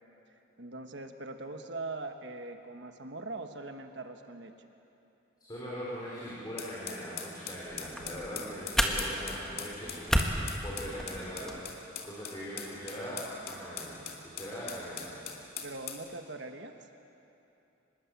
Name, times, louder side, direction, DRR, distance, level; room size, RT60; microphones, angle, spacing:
voice 1, 0.6-4.5 15.6-16.8, right 2 dB, 60° right, 6 dB, 1.4 m, -41 dB
voice 2, 5.4-14.0 14.3-15.1, equal, 20° left, -7 dB, 4.9 m, -41 dB
sound 1, 6.6-16.1, left 7 dB, 50° left, 2.5 m, -42 dB
sound 2, 7.6-11.6, equal, 5° left, 1.6 m, -33 dB
25.5 x 21.0 x 8.3 m, 2.9 s
head